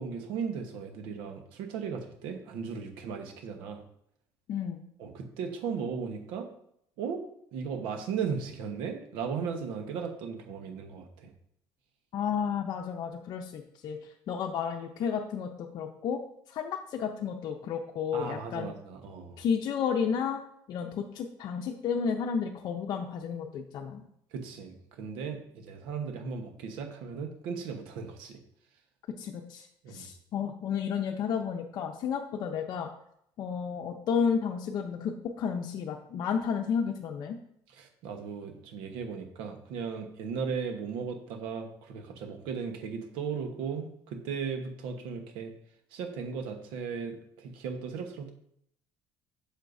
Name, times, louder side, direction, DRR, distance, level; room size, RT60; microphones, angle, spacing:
voice 1, 0.0-3.8 5.0-6.5 7.0-7.2 7.5-11.3 18.1-19.4 24.3-28.4 29.8-30.1 37.7-45.5 45.9-48.3, right 6 dB, 85° right, 5 dB, 1.2 m, -36 dB
voice 2, 4.5-4.8 12.1-14.0 14.3-16.2 16.5-18.7 19.4-20.4 20.7-24.1 29.2-32.9 33.4-37.4, left 7 dB, 55° left, 2 dB, 0.6 m, -32 dB
8.0 x 6.5 x 2.7 m, 0.72 s
cardioid pair, 130°, 8 cm